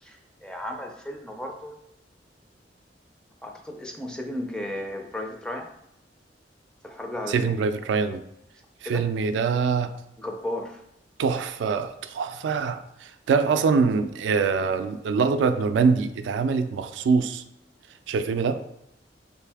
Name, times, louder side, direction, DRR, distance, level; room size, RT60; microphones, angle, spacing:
voice 1, 0.0-1.8 3.4-5.7 6.8-7.5 8.9-9.1 10.2-10.8, left 1 dB, 5° left, 2 dB, 0.4 m, -34 dB
voice 2, 7.3-8.2 8.8-9.9 11.2-17.4 18.1-18.6, right 5 dB, 90° right, 9 dB, 0.3 m, -24 dB
3.3 x 2.6 x 3.4 m, 0.80 s
head